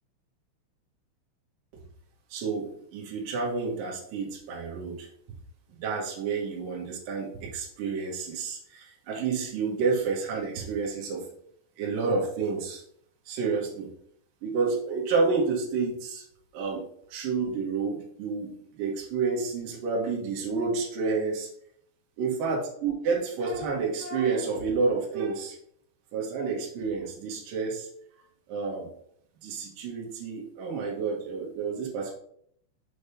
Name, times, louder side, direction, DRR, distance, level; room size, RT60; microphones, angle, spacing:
voice 1, 2.3-5.1 5.7-11.2 11.8-12.8 13.3-13.9 14.4-16.2 16.5-21.5 22.2-25.6 26.1-27.9 28.5-28.9 29.4-32.1, right 4 dB, 60° right, -3 dB, 2.7 m, -30 dB
6.9 x 3.9 x 4.9 m, 0.67 s
omnidirectional pair, 5.0 m